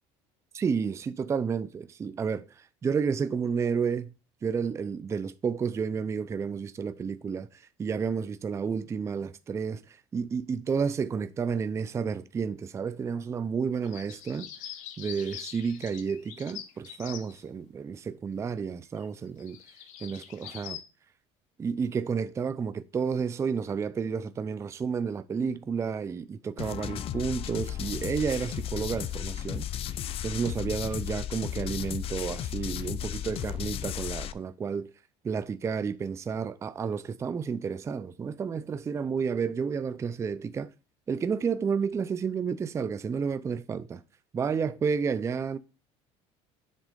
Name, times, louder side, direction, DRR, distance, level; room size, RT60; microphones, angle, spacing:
voice 1, 0.5-4.1 4.4-14.5 15.0-19.6 20.0-20.8 21.6-29.7 30.2-34.9 35.2-40.7 41.1-44.0 44.3-45.6, right 6 dB, 20° right, 0.4 m, -31 dB
sound 1, 13.8-17.4 19.0-19.1 19.4-20.8, left 10 dB, 75° left, 1.1 m, -43 dB
sound 2, 26.6-34.3, left 10 dB, 45° left, 0.5 m, -34 dB
7.5 x 3.6 x 5.1 m
cardioid pair, 120°, 13 cm